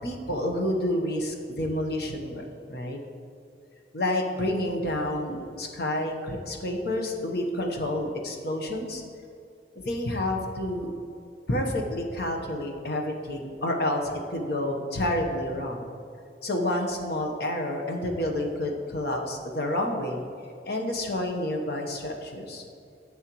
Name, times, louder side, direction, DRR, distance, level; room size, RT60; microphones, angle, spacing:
voice 1, 0.0-3.0 3.9-9.0 9.7-10.9 11.5-15.9 16.4-20.2 20.7-22.6, left 1 dB, 60° left, 2 dB, 1.0 m, -29 dB
10.5 x 7.3 x 3.1 m, 2.5 s
head